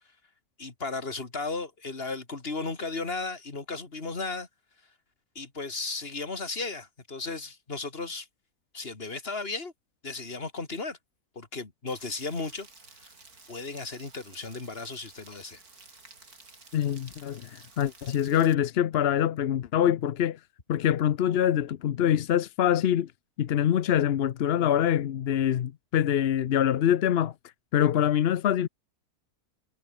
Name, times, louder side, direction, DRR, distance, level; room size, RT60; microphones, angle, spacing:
voice 1, 0.6-4.5 5.3-8.3 8.7-9.7 10.0-11.0 11.4-12.7 13.5-15.6, left 3 dB, 40° left, 2.6 m, -35 dB
Rain, 11.9-18.5, right 3 dB, 70° right, 4.3 m, -53 dB
voice 2, 16.7-20.4 20.7-23.1 23.4-27.3 27.7-28.7, left 10 dB, 55° left, 0.7 m, -25 dB
omnidirectional pair, 1.6 m